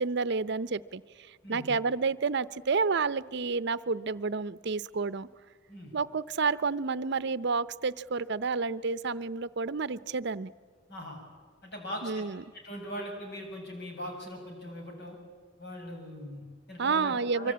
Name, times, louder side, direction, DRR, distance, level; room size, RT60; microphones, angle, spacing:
voice 1, 0.0-5.3 5.9-10.5 12.0-12.4 16.8-17.5, right 4 dB, 60° right, 16 dB, 0.7 m, -30 dB
voice 2, 1.4-1.7 5.7-5.9 10.9-11.2 11.6-12.2 12.5-15.2 15.6-17.5, equal, 60° left, 2 dB, 6.9 m, -41 dB
25.0 x 24.0 x 8.6 m, 1.5 s
head